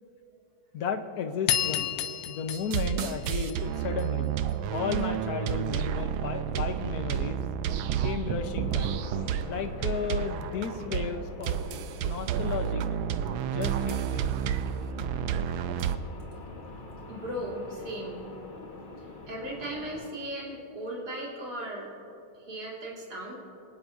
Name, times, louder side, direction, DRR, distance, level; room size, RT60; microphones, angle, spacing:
voice 1, 0.7-1.9 2.3-4.3 4.7-7.4 8.0-8.9 9.5-11.6 12.0-12.8 13.5-14.3, left 6 dB, 55° left, 7 dB, 1.3 m, -33 dB
sound 1, 1.5-4.0, left 11 dB, 80° left, 1.6 m, -31 dB
sound 2, 2.5-16.0, right 9 dB, 80° right, 1.4 m, -30 dB
sound 3, 8.3-20.1, left 2 dB, 30° left, 1.2 m, -45 dB
voice 2, 17.1-18.2 19.3-21.9 22.3-23.4, right 1 dB, 50° right, -5 dB, 4.1 m, -37 dB
26.0 x 19.0 x 2.7 m, 2.9 s
omnidirectional pair, 2.2 m